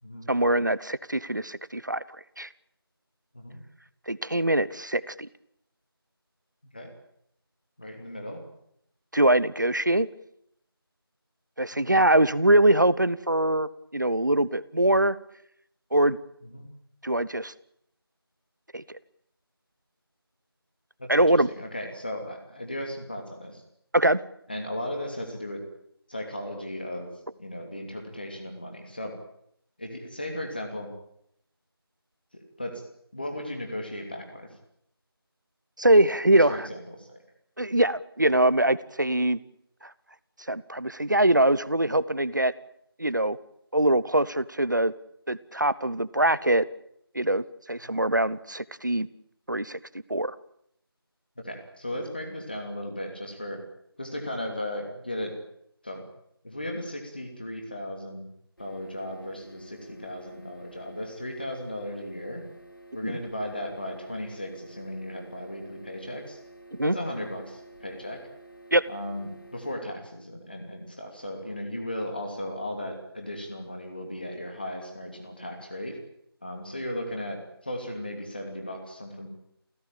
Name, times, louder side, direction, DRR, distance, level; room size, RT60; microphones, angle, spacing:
voice 1, 0.3-2.0 2.4-2.5 4.1-5.3 9.1-10.1 11.6-15.2 15.9-16.2 17.0-17.5 18.7-18.8 21.1-21.5 23.9-24.2 35.8-36.7 37.6-39.4 40.5-42.5 43.0-43.4 43.7-44.9 45.3-46.7 47.1-49.1 49.5-49.8 50.1-50.4 63.0-63.2 66.7-66.9 68.7-68.8, right 1 dB, 50° right, 18 dB, 1.0 m, -23 dB
voice 2, 7.8-8.4 11.7-11.9 16.4-16.7 21.0-23.6 24.5-25.6 26.1-27.1 27.4-29.1 29.8-30.9 32.3-32.8 33.1-34.5 36.3-37.2 47.9-48.0 51.4-53.6 54.0-55.4 55.8-56.0 56.4-58.3 58.6-62.4 62.9-66.4 66.8-68.3 68.9-76.0 76.4-79.3, left 1 dB, 25° left, 3 dB, 2.8 m, -36 dB
sound 1, 58.6-69.7, right 2 dB, 55° left, 6.7 m, -51 dB
28.5 x 15.5 x 8.9 m, 0.72 s
figure-of-eight pair, 180°, 13 cm